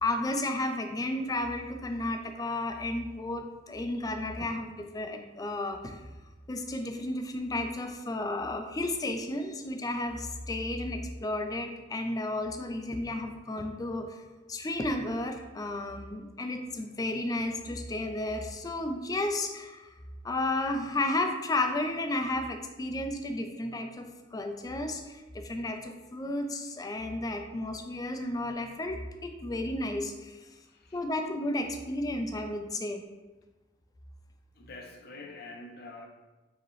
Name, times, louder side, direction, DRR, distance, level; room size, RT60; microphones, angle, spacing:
voice 1, 0.0-6.0 6.5-14.2 14.5-19.9 20.2-30.4 30.9-33.0, left 2 dB, 20° left, 6 dB, 0.3 m, -33 dB
voice 2, 30.5-31.0 34.5-36.1, left 2 dB, 55° left, 2 dB, 0.6 m, -46 dB
4.8 x 2.9 x 3.1 m, 1.2 s
head